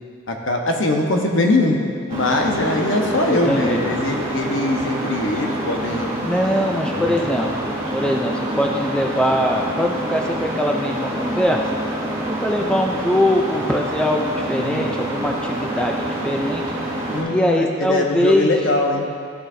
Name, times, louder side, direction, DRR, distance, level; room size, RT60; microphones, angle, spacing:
voice 1, 0.3-1.8 2.1-6.1 6.9-7.1 14.5-15.0 17.1-19.1, left 2 dB, 70° left, 2 dB, 0.9 m, -21 dB
sound 1, 2.1-17.2, right 1 dB, 35° right, 2.2 m, -27 dB
voice 2, 3.3-3.8 6.2-11.7 12.3-16.6 17.3-18.5, left 1 dB, 5° left, 1 dB, 0.3 m, -22 dB
13.5 x 6.3 x 2.6 m, 2.3 s
head